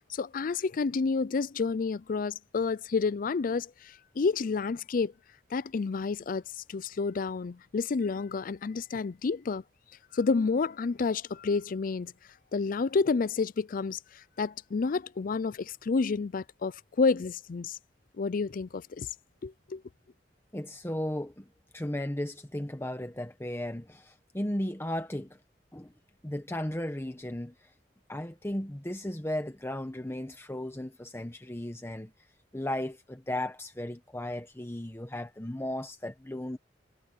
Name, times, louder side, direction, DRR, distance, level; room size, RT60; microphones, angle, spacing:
voice 1, 0.1-5.1 5.5-6.4 6.7-9.6 10.1-12.1 12.5-17.8 18.2-19.1 19.4-19.8, left 4 dB, 50° left, 0.4 m, -30 dB
voice 2, 20.5-21.4 21.7-25.4 25.7-25.9 26.2-27.7 28.1-32.1 32.5-36.6, left 1 dB, 15° left, 1.1 m, -35 dB
head